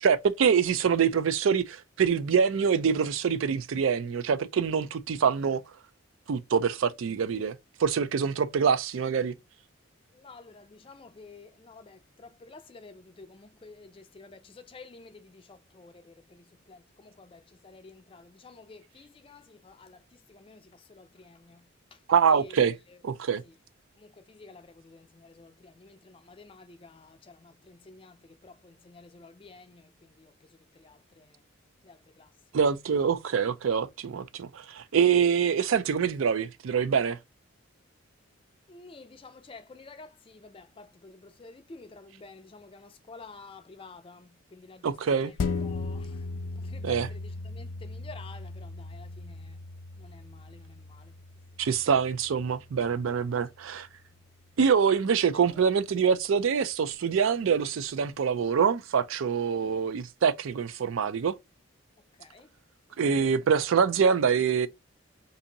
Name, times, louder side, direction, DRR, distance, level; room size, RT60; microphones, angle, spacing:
voice 1, 0.0-5.6 6.3-9.3 22.1-22.7 23.0-23.4 32.5-37.2 44.8-45.3 46.8-47.1 51.6-53.9 54.6-61.3 63.0-64.7, right 6 dB, 75° right, 0.4 m, -25 dB
voice 2, 10.2-16.1 16.7-16.8 17.2-20.0 20.3-20.6 21.0-21.6 22.3-22.4 24.3-28.2 28.4-29.8 30.8-31.2 31.9-32.3 38.7-44.8 45.6-46.1 46.7-47.2 47.5-49.6 50.0-50.8 62.2-62.5, left 3 dB, 25° left, 0.4 m, -50 dB
sound 1, 45.4-54.2 54.6-54.7, left 3 dB, 85° left, 0.5 m, -38 dB
2.7 x 2.6 x 3.8 m
head